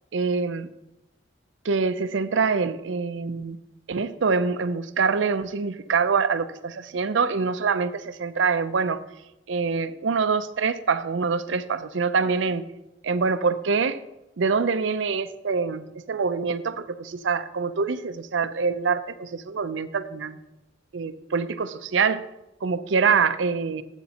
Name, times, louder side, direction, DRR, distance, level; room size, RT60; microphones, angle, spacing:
voice 1, 0.1-0.7 1.6-3.6 3.9-9.0 9.5-12.7 13.0-14.0 14.4-20.4 20.9-22.2 22.6-23.8, right 5 dB, 75° right, 12 dB, 0.5 m, -25 dB
12.5 x 8.1 x 2.9 m, 0.93 s
head